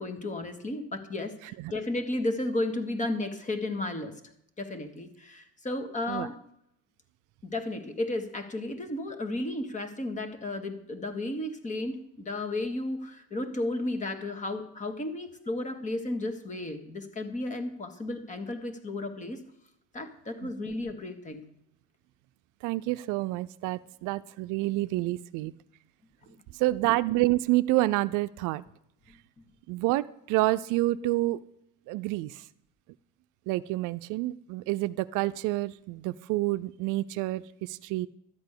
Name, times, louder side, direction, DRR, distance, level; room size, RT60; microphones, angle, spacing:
voice 1, 0.0-4.2 4.6-6.4 7.4-19.4 19.9-21.4 31.0-31.2, left 2 dB, 25° left, 8 dB, 1.7 m, -33 dB
voice 2, 22.6-25.5 26.6-28.6 29.7-31.4 31.9-32.3 33.5-38.1, right 18 dB, 75° right, 14 dB, 0.6 m, -28 dB
12.5 x 8.2 x 6.7 m, 0.76 s
cardioid pair, 130°, 31 cm